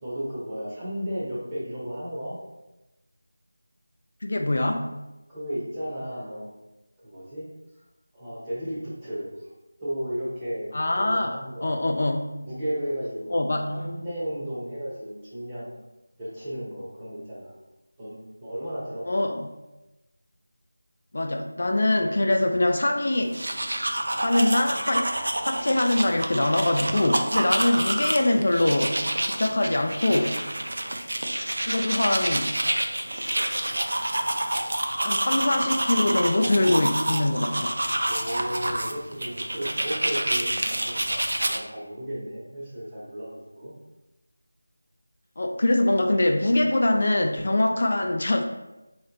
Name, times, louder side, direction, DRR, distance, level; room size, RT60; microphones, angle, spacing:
voice 1, 0.0-2.4 5.3-6.5 7.0-7.4 8.1-9.3 9.8-11.8 12.4-13.3 13.7-15.7 16.2-17.5 18.0-19.0 27.6-27.9 30.8-31.2 38.1-43.7 47.7-47.9, equal, 10° right, -10 dB, 0.8 m, -34 dB
voice 2, 4.2-4.9 10.7-11.4 11.6-12.3 13.3-13.9 19.1-19.5 21.1-23.4 24.2-29.0 29.2-30.4 31.7-32.5 35.0-37.8 45.4-48.4, left 1 dB, 50° left, 4 dB, 0.3 m, -23 dB
sound 1, 23.2-41.6, right 1 dB, 70° right, 0.4 m, -28 dB
3.0 x 2.9 x 3.8 m, 1.0 s
figure-of-eight pair, 175°, 0 cm